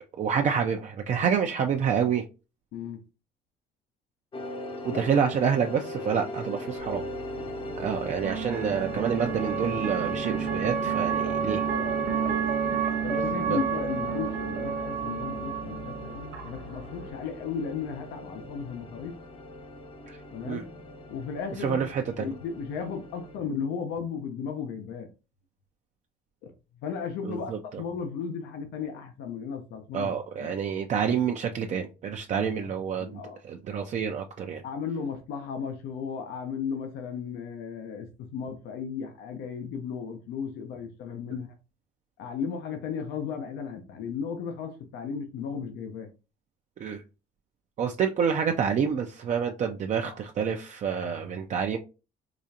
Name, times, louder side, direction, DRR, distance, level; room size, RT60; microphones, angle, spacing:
voice 1, 0.2-2.2 4.8-7.0 7.8-11.6 13.2-13.6 20.1-20.2 20.4-20.6 21.6-22.3 27.2-27.6 29.9-34.6 46.8-47.0 47.8-51.8, right 7 dB, 45° right, 0.5 m, -28 dB
sound 1, 4.3-23.4, left 1 dB, 30° left, 0.7 m, -39 dB
sound 2, 6.8-17.1, right 7 dB, 85° right, 0.7 m, -31 dB
voice 2, 7.4-7.8 11.7-12.5 13.0-19.1 20.3-20.7 21.1-21.8 22.2-25.1 26.8-30.5 32.4-33.4 34.6-41.6 42.2-46.1 50.0-50.2, left 6 dB, 85° left, 0.8 m, -35 dB
4.9 x 2.4 x 2.7 m
cardioid pair, 110°, 17 cm